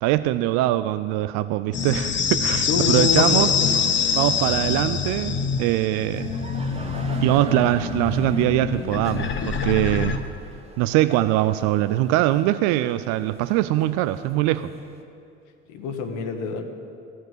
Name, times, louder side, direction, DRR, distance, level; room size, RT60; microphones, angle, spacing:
voice 1, 0.0-3.5 4.1-6.3 7.2-10.2 10.8-14.7, right 14 dB, 50° right, 12 dB, 0.5 m, -22 dB
sound 1, 1.7-10.2, left 6 dB, 30° left, 1.0 m, -25 dB
voice 2, 2.7-3.7 15.7-16.6, left 5 dB, 55° left, 6 dB, 1.4 m, -26 dB
sound 2, 3.7-15.0, right 2 dB, 15° right, 1.4 m, -44 dB
15.0 x 6.5 x 8.0 m, 2.5 s
hypercardioid pair, 65°, 36 cm